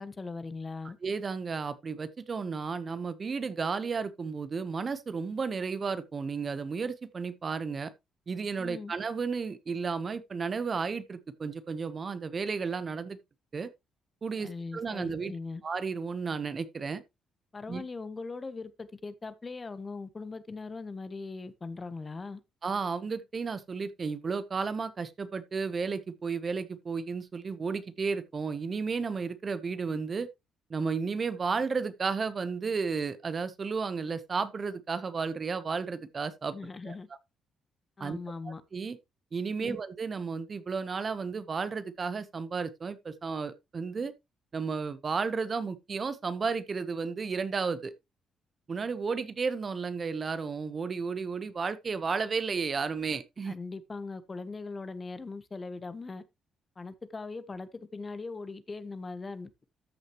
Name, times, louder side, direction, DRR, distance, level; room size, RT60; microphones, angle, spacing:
voice 1, 0.0-1.0 8.6-8.9 14.4-15.6 17.5-22.4 36.5-37.1 38.0-38.6 39.6-39.8 53.4-56.2 56.8-59.5, left 3 dB, 30° left, 1.0 m, -40 dB
voice 2, 1.0-7.9 8.3-13.2 13.5-13.7 14.2-15.3 15.6-17.0 17.7-17.8 22.6-30.3 30.7-36.6 36.8-36.9 38.0-38.2 38.7-39.0 39.3-44.1 44.5-47.9 48.7-53.5, right 5 dB, 40° right, 0.9 m, -33 dB
13.5 x 6.3 x 3.0 m
cardioid pair, 90°, 0 cm